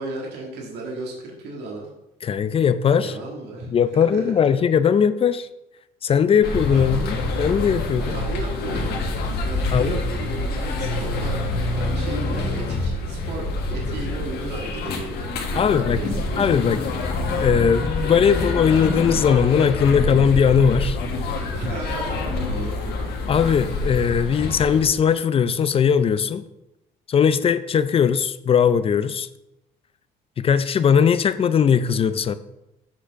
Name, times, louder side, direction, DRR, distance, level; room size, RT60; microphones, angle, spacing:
voice 1, 0.0-1.9 3.0-4.3 6.7-7.3 7.9-9.1 9.4-11.4 11.7-13.4 13.7-16.6 21.5-23.1, right 2 dB, 80° right, -2 dB, 1.8 m, -34 dB
voice 2, 2.2-3.1 3.7-5.5 6.0-8.1 9.7-10.0 15.5-16.0 16.4-21.0 23.3-26.4 27.1-29.3 30.4-32.3, left 7 dB, 35° left, 14 dB, 0.4 m, -19 dB
sound 1, 6.4-24.8, left 2 dB, 75° left, 1.5 m, -26 dB
7.3 x 4.4 x 5.8 m, 0.89 s
cardioid pair, 110°, 17 cm